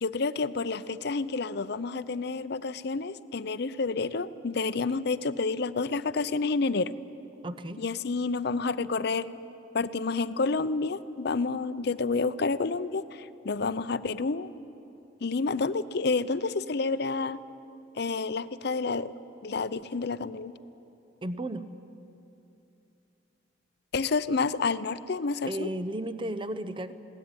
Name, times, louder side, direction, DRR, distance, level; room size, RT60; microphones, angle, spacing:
voice 1, 0.0-6.9 7.8-9.3 9.7-14.5 15.2-17.4 18.0-19.1 19.4-20.5 23.9-25.7, left 4 dB, 55° left, 14 dB, 0.6 m, -29 dB
voice 2, 7.4-7.8 21.2-21.7 25.5-26.9, right 1 dB, 25° right, 12 dB, 0.7 m, -34 dB
21.0 x 17.5 x 9.7 m, 2.8 s
head